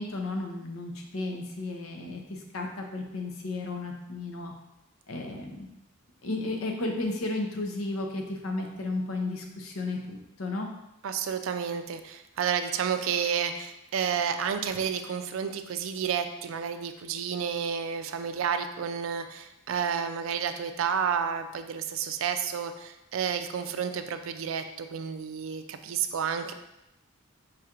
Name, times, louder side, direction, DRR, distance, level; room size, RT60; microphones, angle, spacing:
voice 1, 0.0-4.5 5.1-5.7 6.2-10.7, left 2 dB, 75° left, 2 dB, 0.7 m, -33 dB
voice 2, 11.0-26.5, right 7 dB, 70° right, 8 dB, 0.4 m, -31 dB
4.9 x 2.5 x 4.3 m, 0.89 s
head